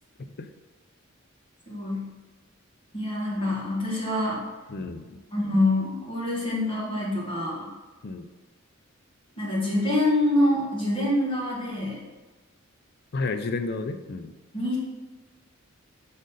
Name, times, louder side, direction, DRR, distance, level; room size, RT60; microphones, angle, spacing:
voice 1, 1.7-2.1 2.9-4.4 5.3-7.7 9.4-12.0 14.5-14.8, left 1 dB, 25° left, -7 dB, 2.0 m, -25 dB
voice 2, 4.7-5.2 8.0-8.3 13.1-14.3, left 3 dB, 50° left, 8 dB, 0.4 m, -31 dB
6.3 x 4.0 x 3.9 m, 1.2 s
head